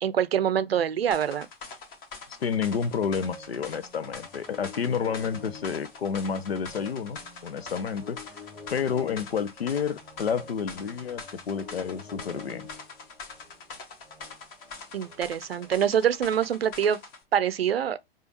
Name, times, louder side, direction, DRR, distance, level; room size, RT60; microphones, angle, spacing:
voice 1, 0.0-1.5 14.9-17.0 17.3-18.0, right 9 dB, 75° right, 0.5 m, -25 dB
sound 1, 1.1-17.2, left 4 dB, 30° left, 1.1 m, -44 dB
voice 2, 2.3-8.2 8.7-12.7, left 6 dB, 80° left, 0.5 m, -30 dB
sound 2, 2.5-16.5, left 3 dB, ahead, 1.0 m, -49 dB
4.8 x 2.4 x 2.9 m
figure-of-eight pair, 100°, 30 cm